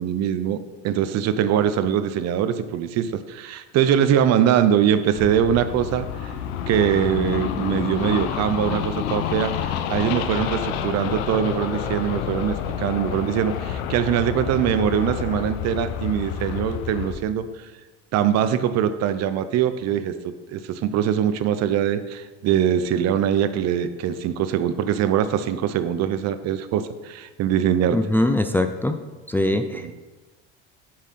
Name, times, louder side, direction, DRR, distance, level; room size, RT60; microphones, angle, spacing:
voice 1, 0.0-6.3 6.7-17.5 18.1-28.0 29.7-29.9, right 9 dB, 55° right, 12 dB, 0.7 m, -22 dB
sound 1, 5.1-17.2, left 8 dB, 85° left, 0.7 m, -29 dB
voice 2, 27.9-29.0 29.3-29.9, left 1 dB, 5° left, 7 dB, 0.4 m, -22 dB
7.8 x 6.4 x 4.3 m, 1.2 s
supercardioid pair, 95°, 31 cm